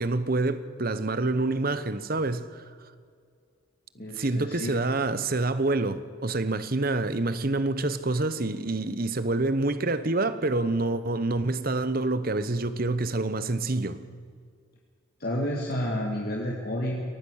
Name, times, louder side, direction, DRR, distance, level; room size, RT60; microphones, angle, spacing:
voice 1, 0.0-2.6 4.1-14.0, right 2 dB, 45° right, 1.0 m, -27 dB
voice 2, 3.9-4.8 15.2-17.0, equal, 50° left, 2.2 m, -30 dB
23.0 x 18.0 x 6.6 m
head